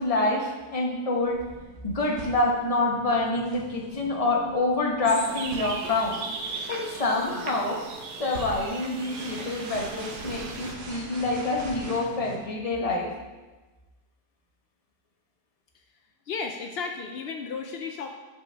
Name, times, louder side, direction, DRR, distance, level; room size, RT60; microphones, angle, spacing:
voice 1, 0.0-1.4 1.8-6.2 6.7-7.8 8.2-13.1, left 2 dB, 25° left, 0 dB, 0.9 m, -27 dB
sound 1, 1.2-12.4, right 2 dB, 60° right, 1.4 m, -43 dB
sound 2, 5.0-10.7, right 4 dB, 80° right, 1.4 m, -38 dB
voice 2, 16.3-18.1, left 5 dB, 80° left, 3 dB, 0.5 m, -34 dB
10.5 x 5.1 x 3.4 m, 1.2 s
omnidirectional pair, 1.7 m